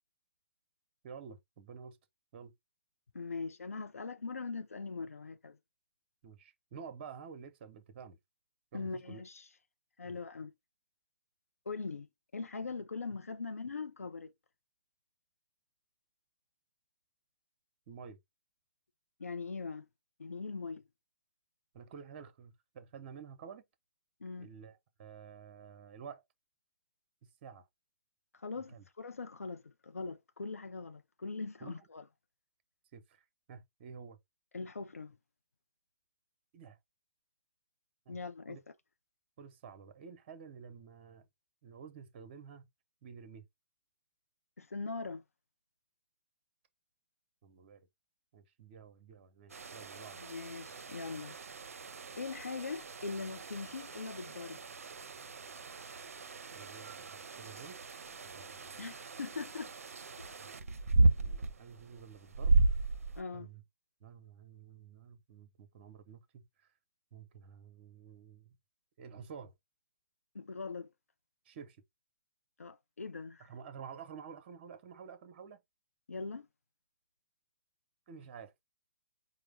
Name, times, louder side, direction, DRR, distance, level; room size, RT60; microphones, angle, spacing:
voice 1, 1.0-2.0 2.3-2.5 6.2-8.2 8.7-9.2 10.0-10.2 17.9-18.2 21.7-23.6 24.4-26.2 27.4-27.7 28.7-28.8 31.6-31.9 32.9-34.2 36.5-36.8 38.1-38.2 38.5-38.6 39.4-41.3 41.6-42.7 43.0-43.4 47.4-47.9 48.3-50.2 56.5-57.8 58.2-58.8 60.4-60.5 61.0-62.9 63.3-63.6 64.0-66.7 67.1-68.6 69.0-69.5 71.4-71.8 73.4-75.6 78.1-78.5, right 6 dB, 45° right, 0.9 m, -50 dB
voice 2, 3.1-5.6 8.7-9.5 10.0-10.5 11.7-12.1 12.3-14.3 19.2-19.9 20.2-20.8 24.2-24.5 28.3-32.0 34.5-35.2 38.1-38.6 44.6-45.2 50.2-51.3 52.2-54.6 58.8-59.7 63.2-63.5 70.3-70.9 72.6-73.4 76.1-76.5, left 4 dB, 90° left, 0.4 m, -41 dB
sound 1, 49.5-63.2, right 2 dB, 75° right, 0.5 m, -34 dB
4.8 x 2.1 x 3.3 m
figure-of-eight pair, 135°, 8 cm